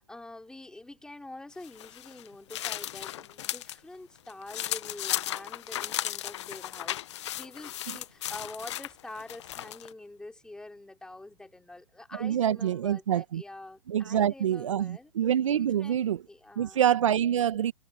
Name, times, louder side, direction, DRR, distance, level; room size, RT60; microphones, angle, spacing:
voice 1, 0.0-15.1 15.5-16.8, left 2 dB, 5° left, 3.4 m, -46 dB
sound 1, 1.6-3.8 4.2-9.9, left 13 dB, 55° left, 1.3 m, -35 dB
voice 2, 12.2-13.4 13.9-16.2 16.6-17.7, right 10 dB, 65° right, 2.0 m, -26 dB
hypercardioid pair, 125°, 17 cm